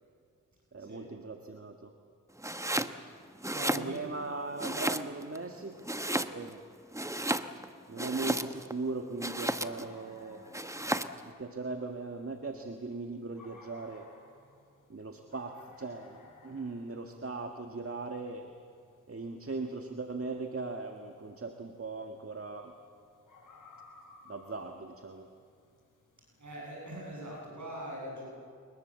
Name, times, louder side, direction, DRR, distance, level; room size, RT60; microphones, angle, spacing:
voice 1, 0.7-1.9 3.7-5.9 6.2-6.6 7.9-10.5 11.3-14.1 14.9-18.5 19.1-22.7 24.3-25.3, right 3 dB, 45° right, 4 dB, 1.7 m, -39 dB
Domestic sounds home sounds, 2.4-3.0 3.3-4.2 4.6-5.4 5.8-6.6 6.9-8.7 9.2-9.9 10.5-11.2, right 1 dB, 10° right, 1.1 m, -33 dB
voice 2, 3.5-4.0 26.4-28.3, right 1 dB, 60° right, -3 dB, 7.7 m, -42 dB
sound 1, 9.6-27.4, left 3 dB, 70° left, 6.3 m, -60 dB
28.0 x 20.5 x 7.6 m, 2.2 s
cardioid pair, 45°, 33 cm